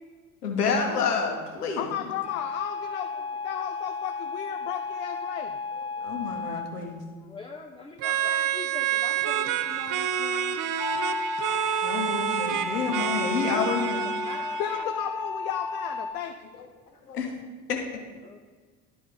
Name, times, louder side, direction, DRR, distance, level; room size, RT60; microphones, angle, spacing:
voice 1, 0.4-1.9 5.7-7.0 9.3-9.5 11.8-14.0 17.1-17.3, left 5 dB, 75° left, 2 dB, 1.2 m, -29 dB
voice 2, 1.8-5.6 14.6-16.5, left 10 dB, 60° left, 5 dB, 0.6 m, -34 dB
sound 1, 2.2-6.7 10.8-16.1, left 3 dB, 35° left, 1.4 m, -33 dB
voice 3, 7.2-10.9 13.4-14.9 18.2-18.4, left 4 dB, 10° left, 1 dB, 0.6 m, -41 dB
sound 2, 8.0-14.8, right 10 dB, 45° right, 0.6 m, -28 dB
12.0 x 4.2 x 3.7 m, 1.4 s
figure-of-eight pair, 55°, 46 cm